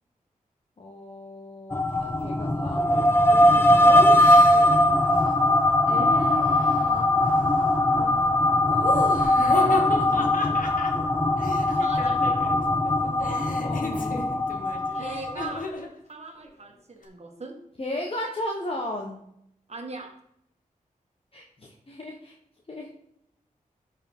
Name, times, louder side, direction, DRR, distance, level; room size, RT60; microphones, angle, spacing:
voice 1, 0.8-4.0 6.8-7.1 7.9-8.6 9.5-10.6 13.1-14.4 17.8-19.2 21.3-22.3 22.7-22.9, left 1 dB, 40° left, 0 dB, 1.3 m, -37 dB
sound 1, 1.7-15.7, left 1 dB, 15° left, 0.7 m, -21 dB
Laughter, 3.8-4.8 5.9-6.9 8.7-12.6 12.8-15.9, left 3 dB, 65° left, 1.4 m, -33 dB
voice 2, 11.7-12.4 14.9-15.7 16.1-17.6 19.7-20.1, right 3 dB, 50° right, 3 dB, 1.7 m, -39 dB
13.0 x 4.7 x 3.7 m, 0.75 s
wide cardioid pair, 85°, 15 cm